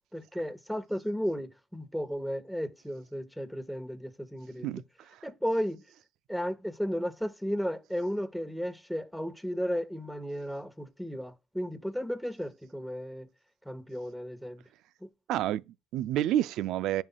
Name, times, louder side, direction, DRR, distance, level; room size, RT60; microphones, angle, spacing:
voice 1, 0.1-4.8 5.2-5.8 6.3-13.3 13.6-14.6 15.0-15.1, equal, ahead, 1.6 m, -34 dB
voice 2, 4.6-5.3 15.3-17.0, right 12 dB, 75° right, 0.4 m, -30 dB
15.0 x 5.7 x 2.3 m
hypercardioid pair, 60°, 0 cm